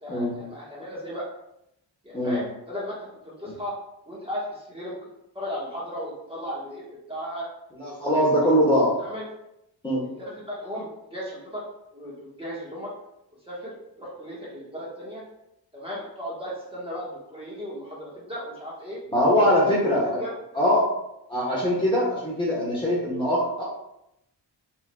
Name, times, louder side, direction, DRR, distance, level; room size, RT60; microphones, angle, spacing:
voice 1, 0.0-1.2 2.0-3.0 3.2-3.7 4.0-5.0 5.3-6.8 7.1-7.5 7.8-8.5 8.8-9.2 10.0-11.6 11.9-12.9 13.5-15.2 15.7-19.0 19.4-20.3, equal, 10° right, -6 dB, 1.3 m, -36 dB
voice 2, 7.8-8.9 9.8-10.0 19.1-20.2 20.5-20.9 21.3-23.6, equal, 10° left, -6 dB, 1.1 m, -22 dB
5.5 x 3.8 x 2.3 m, 0.83 s
wide cardioid pair, 130°, 44 cm